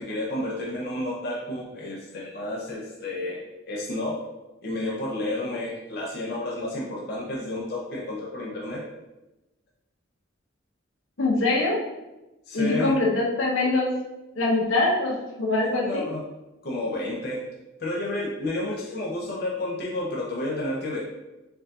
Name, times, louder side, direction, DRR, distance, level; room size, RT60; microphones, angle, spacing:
voice 1, 0.0-4.2 4.6-8.9 12.5-13.0 15.7-16.2 16.6-17.4 17.8-21.0, left 1 dB, 50° left, -4 dB, 0.7 m, -31 dB
voice 2, 11.2-11.8 12.5-13.9 14.4-16.1, left 2 dB, 80° left, -2 dB, 1.0 m, -23 dB
4.7 x 2.6 x 3.8 m, 1.0 s
head